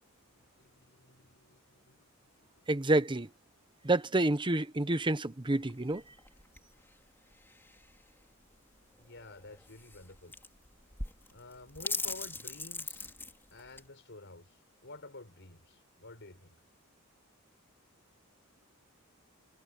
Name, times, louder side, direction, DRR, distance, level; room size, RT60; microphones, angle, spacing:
voice 1, 0.4-2.1 2.4-2.7 8.9-10.3 11.3-13.1 13.5-16.6, left 2 dB, 55° left, 5.6 m, -51 dB
voice 2, 2.7-3.3 3.8-6.0, right 2 dB, 20° right, 1.0 m, -28 dB
sound 1, 5.6-13.9, left 3 dB, 10° left, 3.5 m, -42 dB
head